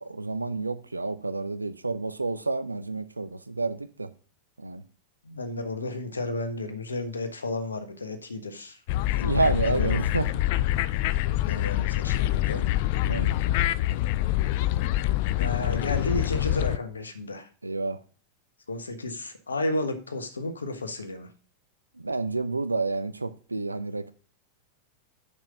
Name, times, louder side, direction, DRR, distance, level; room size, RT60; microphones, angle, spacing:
voice 1, 0.0-4.1 4.6-4.8 9.0-10.3 13.1-13.4 17.6-18.0 22.0-24.1, right 3 dB, 80° right, 0.6 m, -29 dB
voice 2, 5.2-8.8 9.1-10.0 11.5-12.6 15.4-17.5 18.7-21.3, left 2 dB, 75° left, 1.3 m, -32 dB
sound 1, 8.9-16.8, left 14 dB, 50° left, 0.4 m, -25 dB
6.1 x 5.6 x 6.7 m
figure-of-eight pair, 90°, 0 cm